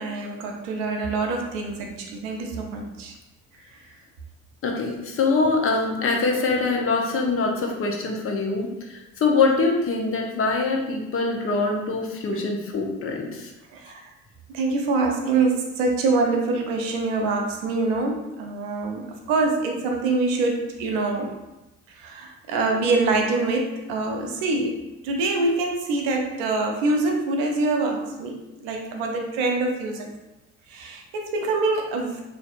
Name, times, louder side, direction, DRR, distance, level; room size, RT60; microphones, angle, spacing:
voice 1, 0.0-3.1 12.3-12.5 13.7-14.1 14.5-21.3 21.9-24.8 25.0-30.1 30.7-32.2, right 3 dB, 65° right, 2 dB, 0.7 m, -25 dB
voice 2, 4.6-13.5, left 3 dB, 30° left, 1 dB, 0.7 m, -24 dB
3.4 x 2.5 x 2.5 m, 0.99 s
figure-of-eight pair, 55°, 41 cm